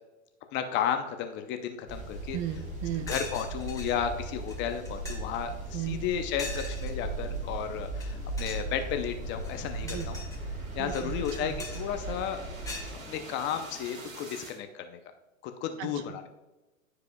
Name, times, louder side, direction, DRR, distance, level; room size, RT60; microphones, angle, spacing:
voice 1, 0.5-2.4 3.1-10.2 10.7-12.4 13.1-15.0 15.4-16.2, left 8 dB, 30° left, 7 dB, 0.6 m, -33 dB
sound 1, 1.9-13.0, right 2 dB, 20° right, 2.7 m, -38 dB
voice 2, 2.3-3.1 5.7-6.0 9.8-10.1 10.8-11.1 11.4-11.6 15.8-16.2, right 10 dB, 35° right, 10 dB, 0.6 m, -36 dB
sound 2, 2.6-2.7 3.1-3.9 4.5-4.6 4.8-5.4 6.4-6.9 7.9-8.1 8.3-8.7 9.3-10.4 10.9-11.8 12.6-12.9, left 3 dB, 10° left, 1.5 m, -41 dB
sound 3, 3.8-14.6, right 2 dB, 80° right, 2.5 m, -47 dB
14.5 x 4.9 x 2.2 m, 1.1 s
hypercardioid pair, 120°, 39 cm